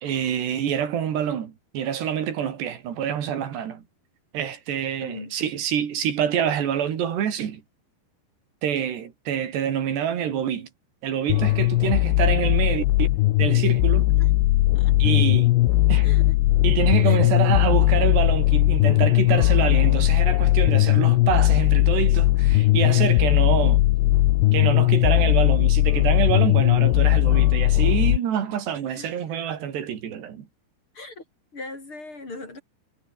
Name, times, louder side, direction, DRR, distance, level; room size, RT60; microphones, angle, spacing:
voice 1, 0.0-3.8 4.3-7.6 8.6-10.7 11.0-13.1 13.4-14.1 15.0-15.5 15.9-16.1 16.6-23.8 24.5-30.5, right 9 dB, 85° right, 5.0 m, -26 dB
voice 2, 5.0-5.4 14.2-14.3 14.8-14.9 16.0-16.3 17.0-17.3 28.9-29.1 30.9-31.2 31.5-32.6, left 2 dB, 30° left, 5.6 m, -39 dB
sound 1, 11.3-28.2, left 17 dB, 85° left, 3.0 m, -19 dB
omnidirectional pair, 4.7 m